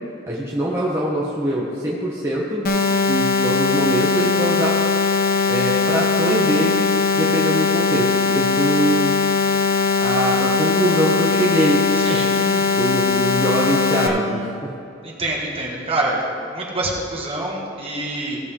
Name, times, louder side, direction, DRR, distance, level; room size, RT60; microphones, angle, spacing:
voice 1, 0.3-2.7 3.1-4.8 5.5-6.8 7.2-9.2 10.0-14.5, right 1 dB, 15° right, -6 dB, 1.1 m, -23 dB
sound 1, 2.6-14.1, left 4 dB, 50° left, 0.9 m, -20 dB
voice 2, 15.0-16.2 16.5-18.4, right 2 dB, 30° right, -3 dB, 1.7 m, -26 dB
16.5 x 6.6 x 3.7 m, 2.6 s
head